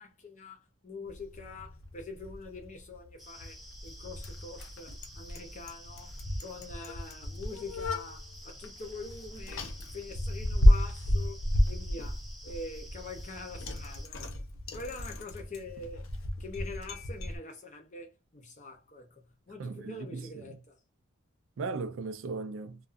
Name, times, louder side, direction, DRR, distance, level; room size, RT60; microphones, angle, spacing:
voice 1, 0.0-6.1 6.4-14.3 14.7-16.1 16.4-20.8, left 3 dB, 35° left, 0.7 m, -45 dB
Bicycle, 1.1-17.4, left 1 dB, 85° left, 0.6 m, -32 dB
sound 1, 3.2-14.1, equal, ahead, 0.6 m, -52 dB
voice 2, 19.6-20.4 21.6-22.8, right 4 dB, 75° right, 0.4 m, -37 dB
2.4 x 2.3 x 2.4 m
head